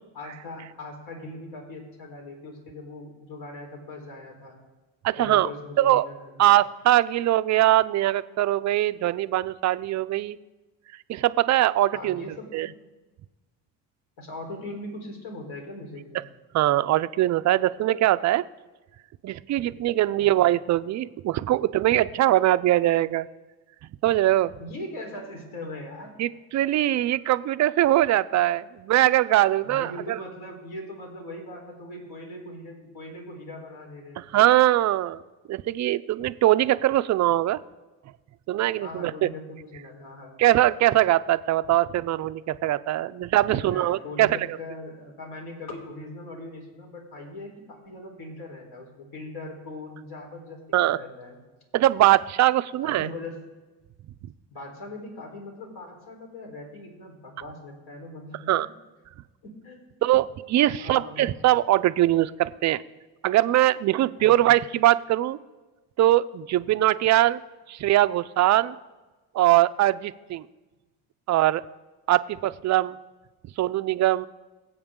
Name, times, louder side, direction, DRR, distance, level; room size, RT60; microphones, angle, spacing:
voice 1, 0.1-4.6 5.2-6.5 11.9-12.7 14.2-16.2 20.2-20.4 24.6-26.1 29.6-34.3 38.8-40.4 43.5-51.4 52.8-53.4 54.5-58.7 59.4-59.8 60.1-60.2 60.7-61.2 64.4-64.5, left 2 dB, 60° left, 1 dB, 4.1 m, -40 dB
voice 2, 5.0-5.5 5.8-6.0 6.4-10.4 11.1-12.2 12.5-12.7 16.5-18.4 19.2-23.3 24.0-24.5 26.2-30.2 34.2-35.2 35.5-37.6 38.5-39.3 40.4-44.3 50.7-51.0 51.7-53.1 58.5-58.7 60.0-62.8 63.2-65.4 66.0-67.4 67.7-68.7 69.3-70.5 71.3-71.6 72.1-73.0 73.6-74.3, right 14 dB, 45° right, 14 dB, 0.5 m, -22 dB
22.5 x 8.0 x 3.7 m, 1.2 s
cardioid pair, 105°, 42 cm